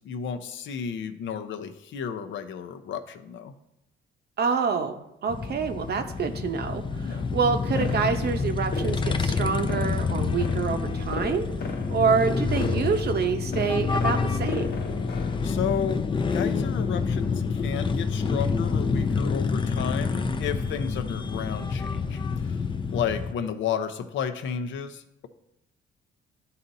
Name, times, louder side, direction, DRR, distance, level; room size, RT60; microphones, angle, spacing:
voice 1, 0.0-3.5 7.0-7.3 15.1-16.0 16.3-22.6 22.9-25.3, left 7 dB, 70° left, 8 dB, 0.7 m, -32 dB
voice 2, 4.4-14.7, right 5 dB, 55° right, 7 dB, 0.7 m, -27 dB
sound 1, 5.3-23.3, left 4 dB, 25° left, 0.5 m, -28 dB
sound 2, 7.8-15.4, left 2 dB, 55° left, 1.0 m, -36 dB
12.0 x 4.1 x 2.6 m, 0.84 s
cardioid pair, 90°, 20 cm